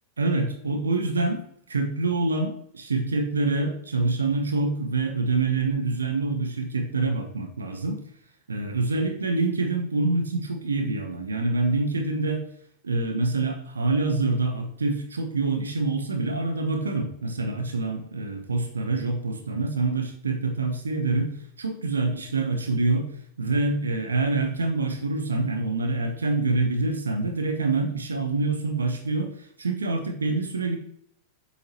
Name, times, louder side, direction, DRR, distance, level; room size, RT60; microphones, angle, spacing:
voice 1, 0.2-1.4 1.7-8.0 8.5-12.4 12.8-21.3 21.6-23.1 23.4-29.3 29.6-30.8, right 3 dB, 75° right, 4 dB, 1.0 m, -26 dB
7.6 x 7.0 x 3.0 m, 0.68 s
figure-of-eight pair, 90°, 0 cm